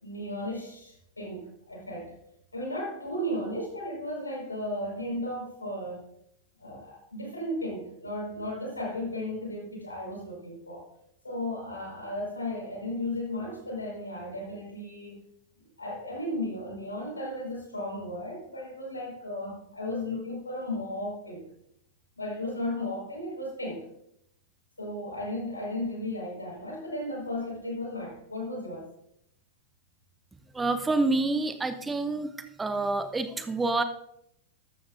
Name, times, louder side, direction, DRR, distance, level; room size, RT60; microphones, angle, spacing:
voice 1, 0.0-2.1 2.5-6.0 6.6-10.8 11.2-15.2 15.8-21.4 22.2-23.9 24.8-28.9, left 1 dB, 80° left, -2 dB, 5.3 m, -35 dB
voice 2, 30.5-33.8, right 3 dB, 10° right, 11 dB, 0.8 m, -28 dB
14.0 x 12.5 x 2.7 m, 0.77 s
figure-of-eight pair, 90°, 0 cm